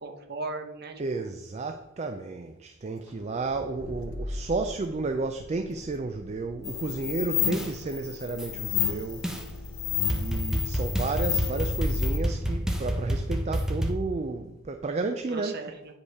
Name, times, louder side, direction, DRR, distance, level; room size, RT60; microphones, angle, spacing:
voice 1, 0.0-1.3 15.3-15.9, right 3 dB, 45° right, 1.0 m, -37 dB
voice 2, 1.0-9.3 10.1-15.7, right 3 dB, 30° right, 0.4 m, -32 dB
Accelerating revving vroom, 3.0-12.6, left 1 dB, 90° left, 1.2 m, -40 dB
sound 1, 6.6-12.2, left 11 dB, 70° left, 0.7 m, -31 dB
sound 2, 7.5-7.7 8.4-8.5 9.2-9.4 10.1-13.9, equal, 5° right, 0.8 m, -28 dB
8.4 x 5.3 x 4.7 m
head